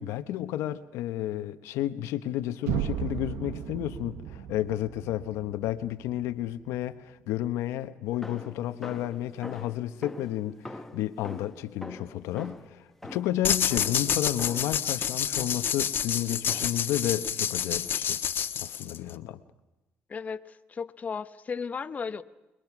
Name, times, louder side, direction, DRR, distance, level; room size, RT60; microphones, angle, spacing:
voice 1, 0.0-12.8 13.1-18.2 18.6-19.4, left 13 dB, 85° left, 1.1 m, -32 dB
sound 1, 2.7-6.6, right 9 dB, 85° right, 1.3 m, -35 dB
sound 2, 8.2-14.9 15.4-15.8 16.5-17.0, left 1 dB, 5° left, 1.3 m, -44 dB
sound 3, 13.4-19.1, left 9 dB, 55° left, 1.4 m, -28 dB
voice 2, 20.1-22.2, left 5 dB, 35° left, 1.0 m, -35 dB
29.0 x 21.5 x 6.1 m
cardioid pair, 95°, 5 cm